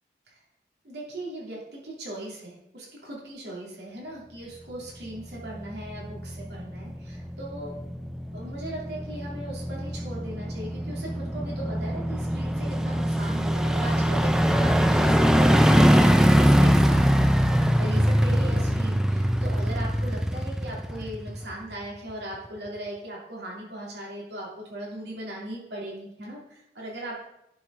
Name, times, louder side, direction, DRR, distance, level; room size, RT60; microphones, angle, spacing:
voice 1, 0.8-7.8 8.3-27.3, right 1 dB, 75° right, -4 dB, 2.8 m, -38 dB
sound 1, 5.2-21.7 22.1-22.2, equal, 5° right, 0.4 m, -23 dB
10.5 x 5.0 x 3.7 m, 0.81 s
head